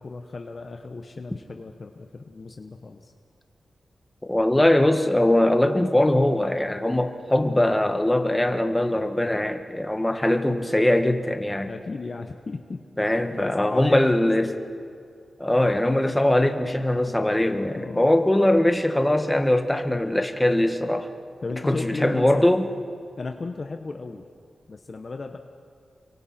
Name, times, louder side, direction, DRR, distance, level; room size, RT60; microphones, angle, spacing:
voice 1, 0.0-3.1 11.7-12.8 13.3-14.5 17.7-18.1 21.4-22.5 23.2-24.3 24.7-25.4, left 3 dB, 50° left, 4 dB, 1.1 m, -35 dB
voice 2, 4.2-11.7 13.0-14.5 15.4-21.1 21.7-22.7, left 1 dB, 10° left, 5 dB, 1.7 m, -21 dB
29.0 x 23.5 x 4.4 m, 2.2 s
wide cardioid pair, 90°, 0 cm